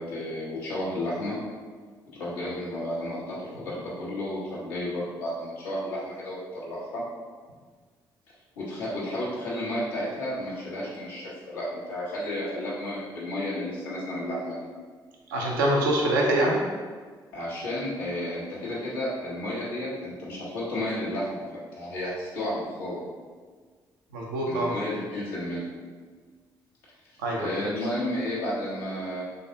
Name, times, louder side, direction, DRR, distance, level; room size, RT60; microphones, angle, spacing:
voice 1, 0.0-1.4 2.1-7.0 8.6-14.7 17.3-23.0 24.4-25.6 27.4-29.2, left 1 dB, 85° left, -7 dB, 1.0 m, -32 dB
voice 2, 15.3-16.6 24.1-24.7 27.2-27.6, right 1 dB, 85° right, -1 dB, 0.6 m, -24 dB
3.8 x 3.4 x 2.8 m, 1.5 s
hypercardioid pair, 45°, 11 cm